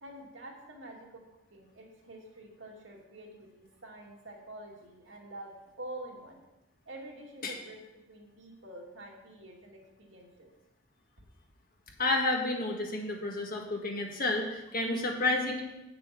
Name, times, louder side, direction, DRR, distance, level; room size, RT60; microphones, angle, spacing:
voice 1, 0.0-1.2 1.5-6.4 6.9-7.8 8.1-10.5, right 1 dB, 75° right, -1 dB, 2.4 m, -47 dB
voice 2, 12.0-15.6, left 2 dB, 50° left, 1 dB, 1.7 m, -30 dB
8.9 x 6.9 x 6.9 m, 0.97 s
head